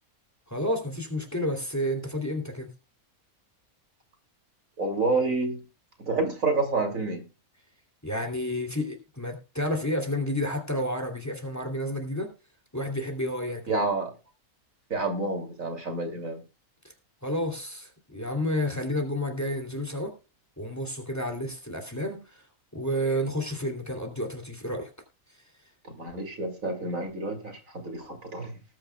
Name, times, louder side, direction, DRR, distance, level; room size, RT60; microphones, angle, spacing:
voice 1, 0.5-2.7 8.0-12.3 12.7-13.8 17.2-20.1 20.6-22.4 22.7-24.9, left 1 dB, 10° left, 2.8 m, -30 dB
voice 2, 4.8-5.6 6.0-7.3 13.7-14.1 14.9-16.4 25.9-28.5, right 3 dB, 65° right, 3.1 m, -29 dB
19.5 x 9.4 x 2.3 m
omnidirectional pair, 1.5 m